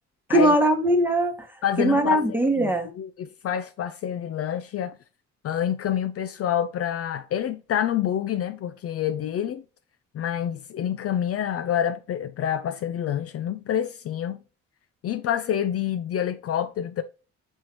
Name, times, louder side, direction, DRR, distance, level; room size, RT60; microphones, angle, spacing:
voice 1, 0.3-1.4 1.8-2.9, right 1 dB, 5° right, 1.0 m, -20 dB
voice 2, 1.6-2.2 2.6-5.0 5.4-9.6 10.1-14.4 15.0-17.0, left 10 dB, 50° left, 0.4 m, -27 dB
5.5 x 3.1 x 3.0 m
cardioid pair, 90°, 30 cm